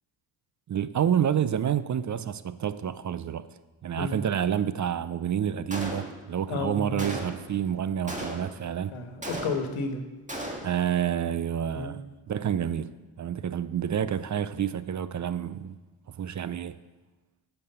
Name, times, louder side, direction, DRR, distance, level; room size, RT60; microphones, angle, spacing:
voice 1, 0.7-3.4 3.8-8.9 10.6-12.0 12.3-15.8 16.2-16.8, right 9 dB, 40° right, 0.5 m, -28 dB
Gunshot gunfire, 5.7-6.4 7.0-7.6 8.1-8.7 9.2-9.9 10.3-10.9, right 1 dB, 15° right, 1.7 m, -36 dB
voice 2, 6.5-7.0 8.9-10.0 11.7-12.0, left 4 dB, 75° left, 1.5 m, -32 dB
9.5 x 6.8 x 6.9 m
cardioid pair, 75°, 49 cm